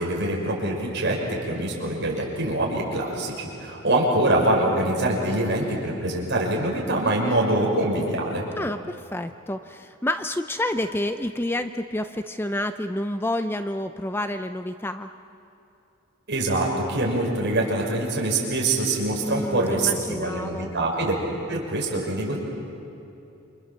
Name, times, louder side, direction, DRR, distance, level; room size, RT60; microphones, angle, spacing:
voice 1, 0.0-8.4 16.3-21.2 21.5-22.4, right 1 dB, 50° right, -2 dB, 6.2 m, -24 dB
voice 2, 8.6-15.1 19.2-20.7, left 1 dB, 10° left, 9 dB, 0.5 m, -29 dB
29.0 x 26.5 x 7.4 m, 2.8 s
head